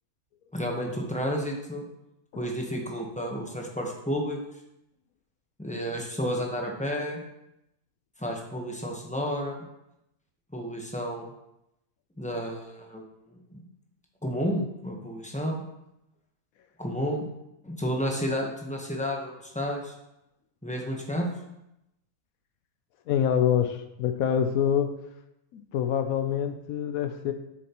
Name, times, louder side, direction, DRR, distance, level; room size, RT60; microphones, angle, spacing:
voice 1, 0.5-1.8 2.4-4.4 5.6-7.2 8.2-9.6 10.5-11.3 12.2-13.0 13.3-13.6 14.2-15.6 16.8-17.3 17.6-19.9 20.6-21.3, equal, 5° left, 0 dB, 0.8 m, -31 dB
voice 2, 23.1-25.0 25.5-27.3, left 9 dB, 70° left, 8 dB, 1.0 m, -26 dB
7.3 x 7.2 x 3.0 m, 0.87 s
omnidirectional pair, 1.6 m